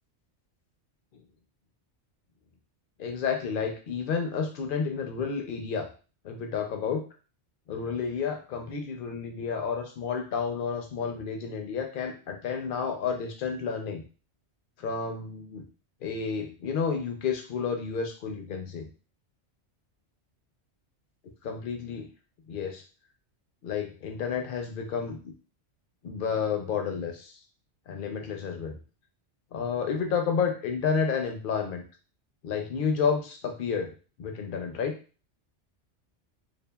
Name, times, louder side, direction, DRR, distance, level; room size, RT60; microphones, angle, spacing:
voice 1, 3.0-5.9 6.2-7.0 7.7-14.0 14.8-15.6 16.0-18.9 21.4-22.1 22.5-22.8 23.6-25.3 26.0-27.4 27.9-28.8 29.5-31.8 32.4-33.9 34.2-34.9, left 6 dB, 60° left, 4 dB, 0.6 m, -30 dB
2.7 x 2.4 x 2.3 m, 0.35 s
omnidirectional pair, 1.2 m